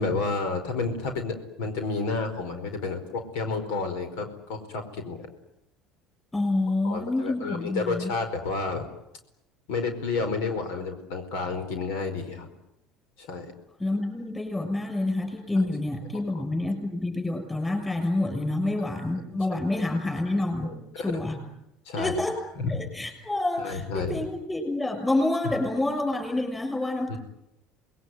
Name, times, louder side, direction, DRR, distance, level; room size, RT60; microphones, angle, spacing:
voice 1, 0.0-5.2 6.8-8.9 9.7-12.5 13.2-13.5 20.6-21.1 21.8-22.1 22.6-22.8 23.6-24.3 27.1-27.2, left 4 dB, 85° left, 7 dB, 4.8 m, -30 dB
voice 2, 6.3-8.1 13.8-20.7 21.0-21.4 22.0-22.4 22.7-27.2, left 2 dB, 10° left, 5 dB, 7.0 m, -28 dB
27.5 x 21.0 x 9.5 m, 0.83 s
cardioid pair, 135°, 0 cm